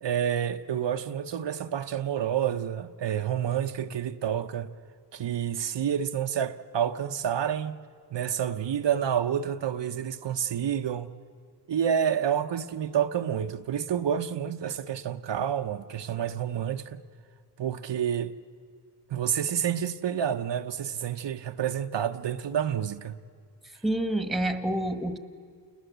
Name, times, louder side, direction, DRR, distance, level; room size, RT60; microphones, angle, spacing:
voice 1, 0.0-4.7 5.1-7.8 8.1-11.1 11.7-17.0 17.6-18.3 19.1-23.2, right 9 dB, 80° right, 0.9 m, -29 dB
voice 2, 23.8-25.2, right 1 dB, ahead, 1.4 m, -28 dB
29.0 x 20.5 x 8.0 m
wide cardioid pair, 115°, 42 cm